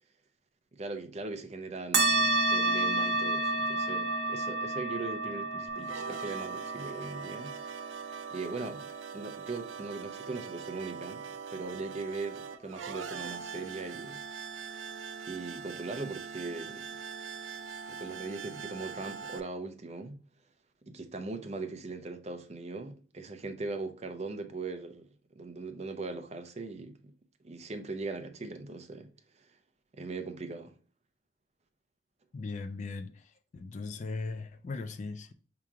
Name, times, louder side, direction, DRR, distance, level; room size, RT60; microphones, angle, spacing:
voice 1, 0.7-7.6 8.3-11.2 11.5-14.2 15.3-16.9 17.9-20.2 20.9-25.1 25.4-27.1 27.4-29.1 29.4-29.5 29.9-30.7, right 3 dB, 35° right, 0.6 m, -40 dB
sound 1, 1.9-10.9, right 2 dB, 65° right, 1.1 m, -31 dB
sound 2, 5.7-19.4, right 6 dB, 85° right, 0.5 m, -42 dB
voice 2, 32.3-33.1 33.5-35.3, left 3 dB, 40° left, 0.3 m, -38 dB
4.9 x 3.0 x 3.5 m
head